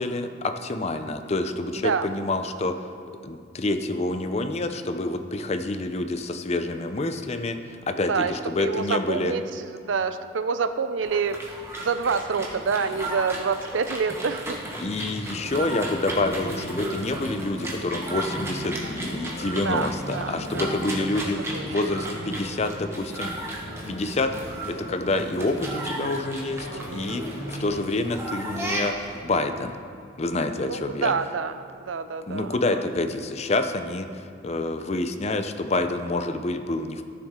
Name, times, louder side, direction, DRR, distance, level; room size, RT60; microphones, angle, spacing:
voice 1, 0.0-2.8 3.2-9.3 14.8-23.3 23.9-24.3 24.7-26.7 26.9-27.2 27.6-29.8 30.2-31.1 32.3-37.0, left 2 dB, 35° left, 7 dB, 0.6 m, -27 dB
voice 2, 1.7-2.1 8.1-11.4 11.8-14.6 19.6-20.8 21.5-21.6 26.7-27.1 30.6-32.8, right 5 dB, 80° right, 10 dB, 0.5 m, -28 dB
sound 1, 11.0-29.2, right 1 dB, 15° right, 1.3 m, -35 dB
sound 2, 15.3-27.9, equal, 75° left, 1.7 m, -39 dB
16.0 x 7.1 x 3.7 m, 2.5 s
head